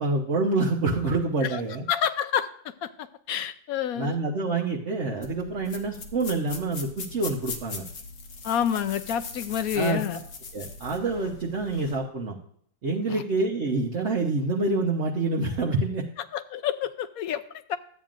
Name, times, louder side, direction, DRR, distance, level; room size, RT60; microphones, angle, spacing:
voice 1, 0.0-1.8 4.0-7.8 9.7-10.0 10.5-12.4 12.8-16.1, right 3 dB, 50° right, -1 dB, 1.1 m, -27 dB
voice 2, 1.9-4.2 8.4-10.2 13.1-13.2 16.3-17.8, left 9 dB, 70° left, 12 dB, 0.9 m, -29 dB
sound 1, 5.2-12.0, left 4 dB, 90° left, 1.9 m, -40 dB
13.5 x 8.8 x 2.5 m, 0.65 s
omnidirectional pair, 1.8 m